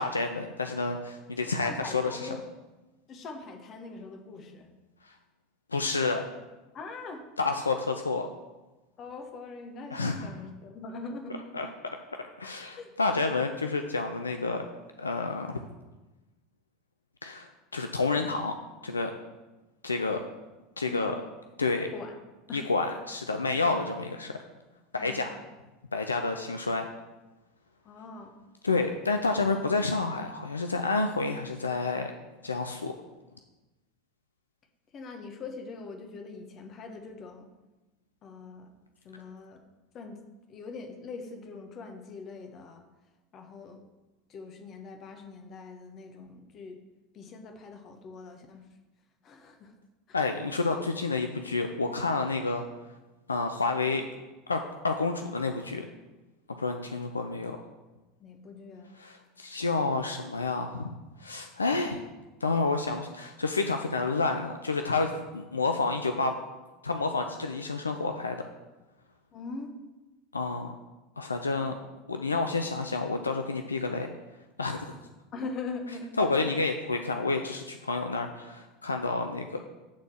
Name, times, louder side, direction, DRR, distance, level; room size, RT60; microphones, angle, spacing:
voice 1, 0.0-2.2 5.0-5.1 5.7-6.2 7.4-8.3 9.9-10.3 11.5-11.7 12.4-14.6 15.0-15.5 17.2-18.5 18.8-19.1 19.8-20.2 20.8-21.2 21.6-21.9 22.5-24.4 24.9-25.4 25.9-26.9 28.6-32.1 32.4-32.9 50.1-52.6 53.3-54.1 54.5-55.9 56.6-57.6 59.0-60.9 61.2-62.0 62.4-66.3 66.8-68.4 70.3-70.7 71.2-71.8 72.1-74.1 74.6-74.9 76.2-79.6, left 3 dB, 80° left, 5 dB, 0.5 m, -29 dB
voice 2, 1.6-2.4 3.1-4.7 6.7-7.2 9.0-11.3 12.8-12.9 20.9-21.1 21.6-22.2 22.5-22.7 25.0-25.3 27.8-28.3 34.9-37.5 38.2-38.7 39.0-39.6 39.9-40.2 40.5-42.8 43.3-43.8 44.3-46.8 47.1-48.7 49.2-49.7 50.1-50.2 58.2-58.9 69.3-69.7 75.3-76.1, left 4 dB, 35° left, 5 dB, 1.4 m, -42 dB
9.4 x 4.2 x 6.4 m, 1.1 s
figure-of-eight pair, 80°, 0 cm